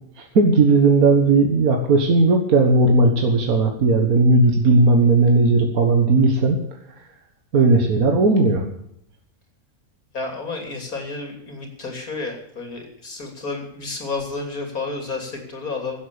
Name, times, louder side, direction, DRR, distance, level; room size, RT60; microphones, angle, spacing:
voice 1, 0.2-6.6 7.5-8.6, right 3 dB, 85° right, 3 dB, 1.9 m, -16 dB
voice 2, 10.1-16.0, left 3 dB, 85° left, 3 dB, 3.7 m, -31 dB
15.5 x 8.4 x 6.9 m, 0.74 s
omnidirectional pair, 1.5 m